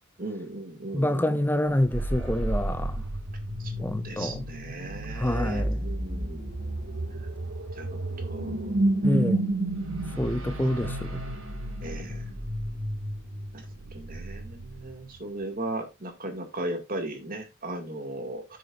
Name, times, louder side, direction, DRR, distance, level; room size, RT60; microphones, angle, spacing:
voice 1, 0.2-1.4 3.6-3.7 4.0-6.5 7.8-8.8 11.8-12.3 13.9-18.4, right 1 dB, 45° right, 2.2 m, -37 dB
voice 2, 0.9-3.0 3.8-4.5 5.2-5.8 9.0-9.4 10.2-11.2, left 1 dB, 10° left, 0.5 m, -27 dB
sound 1, 1.9-15.2, right 1 dB, 75° right, 2.2 m, -31 dB
13.5 x 6.6 x 2.5 m
head